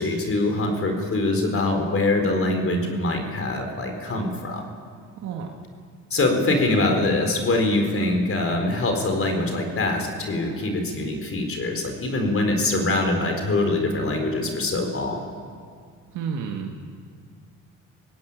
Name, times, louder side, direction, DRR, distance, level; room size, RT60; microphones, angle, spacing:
voice 1, 0.0-4.7 6.1-15.2, left 2 dB, 45° left, 4 dB, 4.3 m, -24 dB
voice 2, 16.1-16.8, right 6 dB, 90° right, 2 dB, 1.8 m, -30 dB
20.0 x 16.5 x 9.8 m, 2.1 s
cardioid pair, 90°, 30 cm